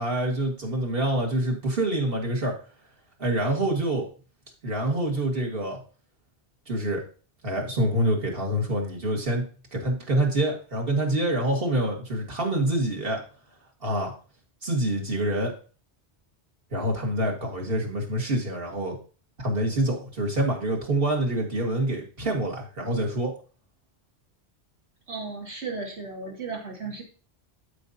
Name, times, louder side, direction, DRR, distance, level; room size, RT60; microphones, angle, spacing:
voice 1, 0.0-2.5 3.2-4.1 4.6-5.8 6.7-7.0 7.4-9.4 9.7-13.2 13.8-14.1 14.6-15.5 16.7-19.0 19.4-23.3, right 1 dB, 55° right, 0 dB, 2.1 m, -26 dB
voice 2, 25.1-27.0, right 4 dB, 75° right, -1 dB, 2.6 m, -35 dB
12.5 x 5.2 x 2.8 m, 0.38 s
omnidirectional pair, 1.1 m